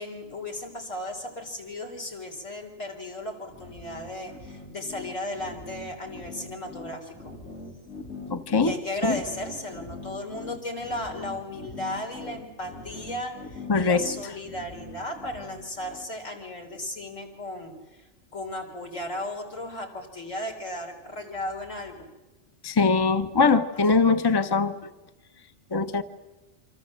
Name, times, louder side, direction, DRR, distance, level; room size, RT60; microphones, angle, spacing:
voice 1, 0.0-7.3 8.6-18.1 18.3-22.1, left 1 dB, 80° left, 4.6 m, -35 dB
sound 1, 3.5-16.1, left 2 dB, 60° left, 3.6 m, -42 dB
voice 2, 8.3-8.7 9.0-9.2 13.7-14.1 22.6-24.7 25.7-26.0, left 4 dB, 20° left, 1.0 m, -22 dB
27.5 x 26.0 x 7.6 m
omnidirectional pair, 1.3 m